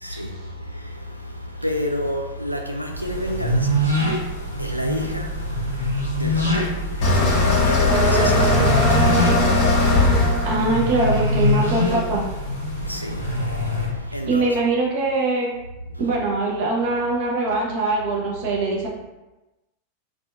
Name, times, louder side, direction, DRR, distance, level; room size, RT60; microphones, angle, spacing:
voice 1, 0.0-10.6 12.7-14.7 15.8-16.1, left 1 dB, 90° left, 0.3 m, -31 dB
sound 1, 2.9-13.9, left 1 dB, 90° right, 0.7 m, -25 dB
sound 2, 7.0-12.0, left 3 dB, 45° left, 0.7 m, -19 dB
sound 3, 7.9-11.7 12.1-12.6, right 3 dB, 5° right, 0.4 m, -25 dB
voice 2, 10.4-12.2 14.3-15.5 16.0-18.9, right 2 dB, 45° right, 0.7 m, -22 dB
2.6 x 2.3 x 2.3 m
figure-of-eight pair, 90°, 0 cm